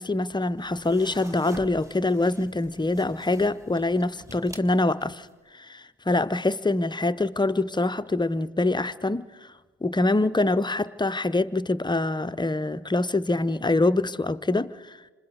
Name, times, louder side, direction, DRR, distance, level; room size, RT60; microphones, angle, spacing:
voice 1, 0.0-5.3 5.5-9.3 9.8-15.0, left 2 dB, 10° left, 0.7 m, -25 dB
sound 1, 0.6-5.3, right 1 dB, 10° right, 2.0 m, -46 dB
27.5 x 26.5 x 4.0 m
hypercardioid pair, 50°, 36 cm